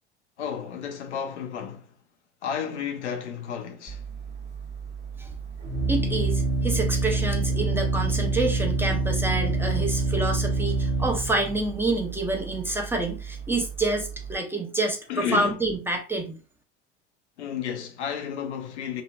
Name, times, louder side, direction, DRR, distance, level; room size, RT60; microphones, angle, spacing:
voice 1, 0.4-1.9 2.4-4.0 15.1-15.6 17.4-19.0, left 7 dB, 85° left, 0.6 m, -32 dB
Organ, 3.9-14.4, right 3 dB, 30° right, 1.1 m, -27 dB
voice 2, 5.9-16.4, right 2 dB, 5° right, 0.8 m, -28 dB
2.9 x 2.3 x 2.4 m
hypercardioid pair, 70°, 33 cm